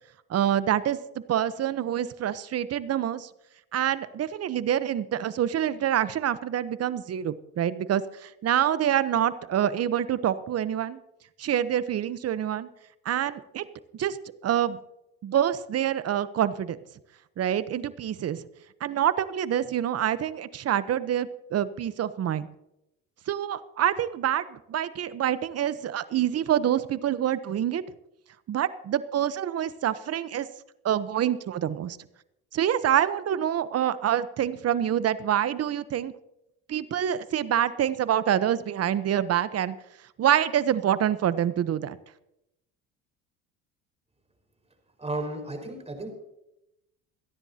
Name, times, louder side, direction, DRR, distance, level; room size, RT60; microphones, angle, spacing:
voice 1, 0.3-1.0 1.3-3.3 3.7-11.0 11.4-12.7 13.0-13.6 13.9-14.2 14.4-14.8 15.2-16.8 17.4-18.4 18.8-22.5 23.3-27.8 28.5-30.5 30.8-32.0 32.5-36.1 36.7-39.8 40.2-42.0, right 10 dB, 45° right, 15 dB, 0.9 m, -26 dB
voice 2, 45.0-46.1, right 2 dB, 20° right, 3 dB, 5.2 m, -33 dB
27.5 x 10.5 x 2.9 m, 0.87 s
supercardioid pair, 80°, 34 cm